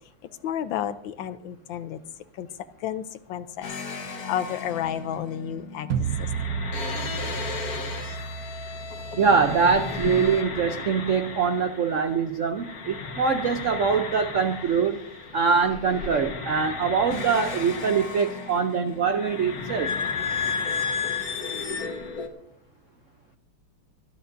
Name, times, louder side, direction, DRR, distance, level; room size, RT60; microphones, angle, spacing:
voice 1, 0.4-2.0 2.4-2.5 2.8-3.0 3.3-3.7 4.3-5.9 6.2-6.3, left 10 dB, 75° left, 12 dB, 1.3 m, -31 dB
sound 1, 3.6-12.3 12.5-22.3, left 5 dB, 50° left, 1.7 m, -34 dB
sound 2, 5.9-10.9, right 7 dB, 65° right, 0.9 m, -33 dB
voice 2, 9.2-15.0 15.3-19.9, right 5 dB, 90° right, 8 dB, 0.6 m, -23 dB
26.0 x 10.5 x 2.6 m, 0.74 s
omnidirectional pair, 2.3 m